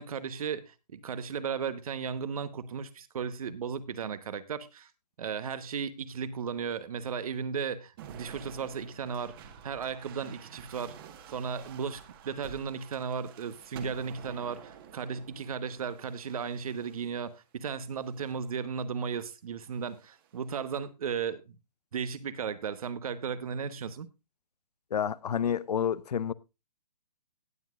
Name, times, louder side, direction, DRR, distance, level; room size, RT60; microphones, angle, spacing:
voice 1, 0.0-4.9 5.2-10.9 11.3-21.6 21.9-24.1, right 6 dB, 60° right, 1.1 m, -35 dB
sound 1, 8.0-17.3 18.0-18.6 19.7-20.3, right 7 dB, 35° right, 1.5 m, -50 dB
voice 2, 24.9-26.3, left 8 dB, 75° left, 0.6 m, -29 dB
18.0 x 7.4 x 2.5 m
hypercardioid pair, 145°, 21 cm